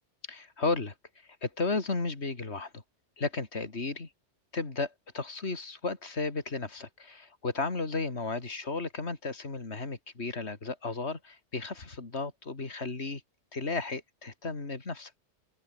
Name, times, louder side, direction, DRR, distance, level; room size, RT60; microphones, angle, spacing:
voice 1, 0.3-2.8 3.2-4.1 4.5-13.2 13.5-15.1, left 3 dB, 70° left, 3.2 m, -34 dB
open air
omnidirectional pair, 1.2 m